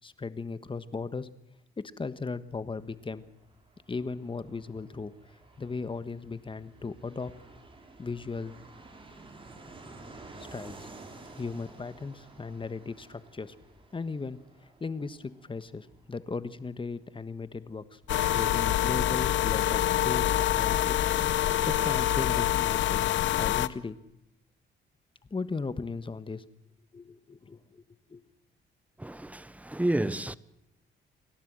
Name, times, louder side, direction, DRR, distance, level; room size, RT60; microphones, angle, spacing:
voice 1, 0.0-1.3 1.8-3.2 3.9-7.3 8.0-8.5 10.5-10.9 11.3-13.5 13.9-18.0 18.3-21.0 21.3-23.1 23.4-24.0 25.3-26.4 26.9-27.8 28.1-28.2, left 4 dB, 25° left, 1.3 m, -37 dB
Fixed-wing aircraft airplane, 2.6-21.0 21.2-21.3 21.5-22.2, right 2 dB, 25° right, 4.6 m, -52 dB
sound 1, 18.1-23.7, left 13 dB, 70° left, 0.8 m, -26 dB
voice 2, 29.0-30.3, right 1 dB, 5° right, 0.9 m, -30 dB
29.0 x 12.5 x 7.7 m
cardioid pair, 90°, 20 cm